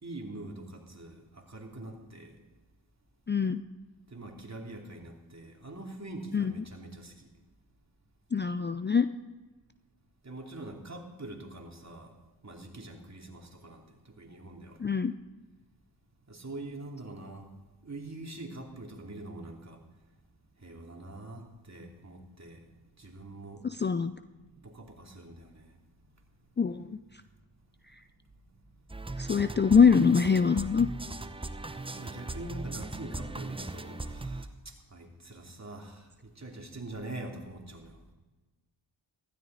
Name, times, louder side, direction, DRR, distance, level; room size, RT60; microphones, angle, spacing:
voice 1, 0.0-2.4 4.1-7.3 10.2-12.2 12.4-14.8 16.3-17.5 17.8-19.8 20.6-22.7 23.0-23.6 24.4-25.8 31.9-38.1, right 2 dB, 35° right, 1 dB, 2.8 m, -44 dB
voice 2, 3.3-3.6 6.3-6.5 8.3-9.1 14.8-15.1 23.6-24.1 26.6-26.9 29.2-30.9, left 6 dB, 25° left, 12 dB, 0.5 m, -23 dB
sound 1, 28.9-34.5, right 2 dB, 10° right, 0.8 m, -38 dB
15.0 x 13.0 x 4.0 m, 1.3 s
supercardioid pair, 40°, 48 cm